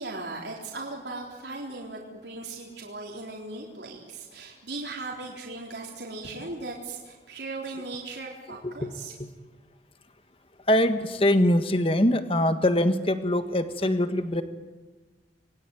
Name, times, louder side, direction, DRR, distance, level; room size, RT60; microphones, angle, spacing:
voice 1, 0.0-9.1, right 3 dB, 70° right, -2 dB, 4.0 m, -38 dB
voice 2, 10.7-14.4, left 1 dB, 30° left, 9 dB, 1.6 m, -23 dB
27.5 x 22.0 x 9.3 m, 1.3 s
head